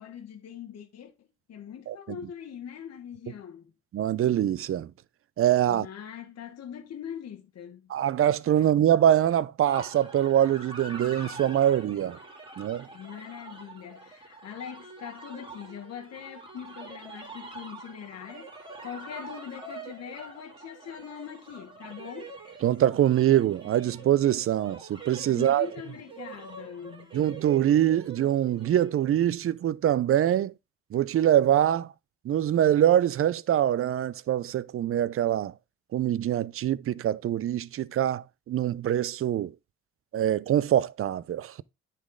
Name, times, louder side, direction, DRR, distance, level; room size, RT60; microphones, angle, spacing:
voice 1, 0.0-3.7 5.7-7.9 8.6-8.7 12.9-18.5 18.8-22.3 25.3-27.2, left 8 dB, 55° left, 1.2 m, -42 dB
voice 2, 3.9-4.9 5.4-5.9 7.9-12.2 12.6-12.9 22.6-25.7 27.1-30.5 30.9-31.9 32.2-35.5 35.9-39.5 40.1-41.6, right 11 dB, 45° right, 0.5 m, -24 dB
sound 1, 9.7-29.1, right 3 dB, 15° right, 2.8 m, -45 dB
9.5 x 4.3 x 3.7 m
cardioid pair, 90°, 30 cm